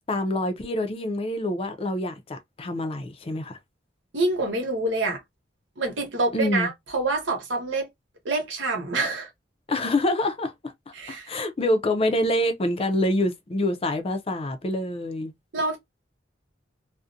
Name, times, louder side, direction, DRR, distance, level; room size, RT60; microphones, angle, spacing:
voice 1, 0.1-3.6 6.3-6.7 9.7-15.3, left 1 dB, 30° left, 0.4 m, -26 dB
voice 2, 4.1-5.2 5.8-7.9 8.2-9.3 10.9-11.4 15.5-15.8, right 2 dB, 85° right, 1.0 m, -26 dB
2.4 x 2.1 x 2.5 m
head